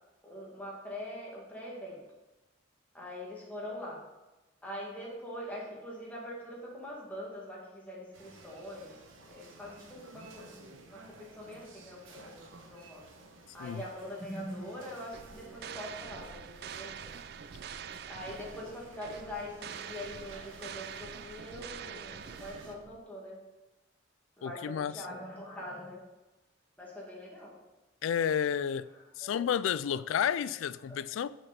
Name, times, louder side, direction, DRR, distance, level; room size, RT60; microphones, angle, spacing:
voice 1, 0.2-2.0 2.9-4.0 4.6-9.0 9.3-13.0 13.5-17.1 18.1-23.4 24.4-26.0 26.8-27.6 29.2-29.5 30.1-30.4 30.9-31.1, left 1 dB, 10° left, 1.9 m, -43 dB
sound 1, 8.1-22.7, right 3 dB, 80° right, 1.1 m, -54 dB
sound 2, 15.1-23.0, right 7 dB, 50° right, 0.3 m, -45 dB
voice 2, 24.4-25.0 28.0-28.9 29.2-31.3, left 8 dB, 80° left, 0.3 m, -31 dB
6.8 x 5.8 x 5.0 m
head